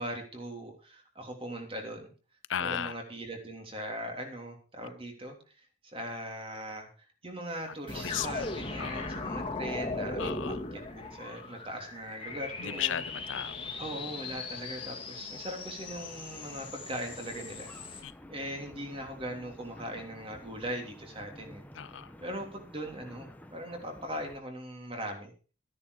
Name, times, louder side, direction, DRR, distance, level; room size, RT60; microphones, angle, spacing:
voice 1, 0.0-2.1 2.6-6.9 7.2-10.5 10.9-13.0 13.8-21.6 22.2-25.3, right 1 dB, 30° right, 3.3 m, -40 dB
voice 2, 2.5-3.0 7.9-8.5 8.8-9.2 10.2-10.6 12.6-13.7 18.0-18.1 21.7-22.1, left 9 dB, 75° left, 0.5 m, -35 dB
sound 1, 7.9-18.0, left 3 dB, 25° left, 2.2 m, -38 dB
sound 2, 15.9-24.4, left 1 dB, 10° left, 1.0 m, -51 dB
14.0 x 10.0 x 4.9 m
head